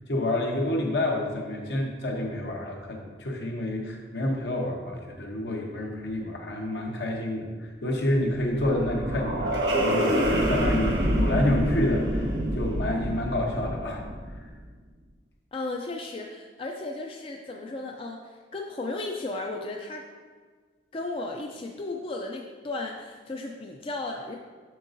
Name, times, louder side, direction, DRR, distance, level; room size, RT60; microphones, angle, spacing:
voice 1, 0.1-10.2 10.5-14.0 14.4-14.5, left 1 dB, 75° left, 0 dB, 1.0 m, -28 dB
synth jet, 8.1-14.4, equal, 80° right, 1.4 m, -27 dB
voice 2, 15.5-20.0 20.9-24.4, left 2 dB, 30° left, 1 dB, 0.4 m, -35 dB
7.5 x 6.3 x 2.6 m, 1.5 s
head